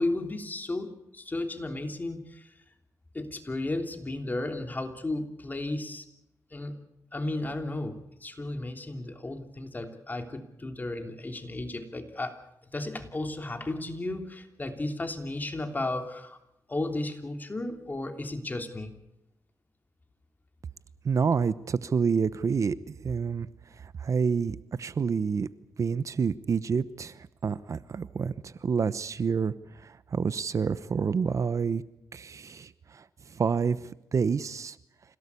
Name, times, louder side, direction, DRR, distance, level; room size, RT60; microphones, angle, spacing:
voice 1, 0.0-2.5 3.1-6.1 6.5-6.8 7.1-12.4 12.7-16.4 16.7-18.9, left 2 dB, 30° left, 5 dB, 3.1 m, -34 dB
voice 2, 21.0-23.5 23.8-25.5 25.8-31.8 32.1-34.8, right 6 dB, 55° right, 16 dB, 0.9 m, -28 dB
27.0 x 17.5 x 8.4 m, 0.86 s
cardioid pair, 70°, 6 cm